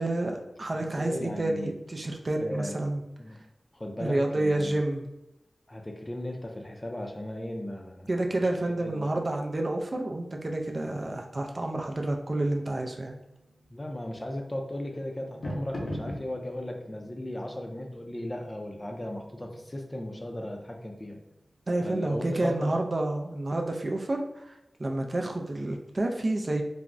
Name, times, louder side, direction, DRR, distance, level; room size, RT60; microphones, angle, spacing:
voice 1, 0.0-3.0 4.0-5.1 8.1-13.1 21.7-26.6, right 2 dB, 45° right, 2 dB, 0.3 m, -29 dB
voice 2, 1.0-1.8 2.4-2.9 3.2-3.4 3.7-4.8 5.7-8.1 8.8-9.2 13.7-21.2 21.8-22.8, left 1 dB, 25° left, 2 dB, 0.4 m, -36 dB
sound 1, 11.6-21.7, equal, 85° left, 0.5 m, -45 dB
3.4 x 2.0 x 2.5 m, 0.91 s
wide cardioid pair, 65°, 0 cm